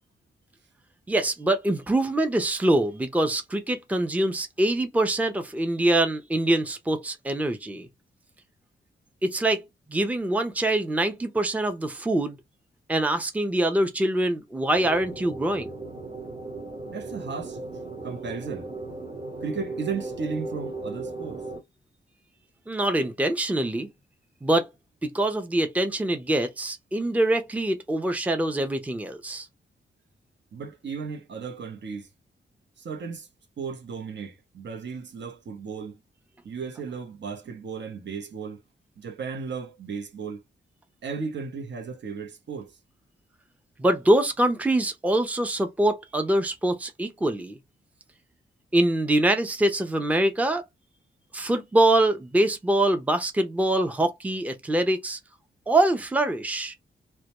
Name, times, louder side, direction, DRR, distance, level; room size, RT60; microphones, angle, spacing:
voice 1, 1.1-7.9 9.2-9.6 9.9-12.4 12.9-15.7 22.7-23.9 24.4-24.7 25.0-29.5 43.8-47.6 48.7-50.6 51.3-55.2 55.7-56.8, right 1 dB, 5° right, 0.5 m, -24 dB
sound 1, 14.7-21.6, right 3 dB, 30° right, 1.0 m, -37 dB
voice 2, 16.8-17.6 18.0-18.7 19.4-21.4 30.5-32.1 32.8-33.3 33.6-36.0 36.4-38.6 39.0-40.4 41.0-42.8, right 5 dB, 65° right, 0.7 m, -35 dB
2.2 x 2.1 x 2.9 m
cardioid pair, 75°, 20 cm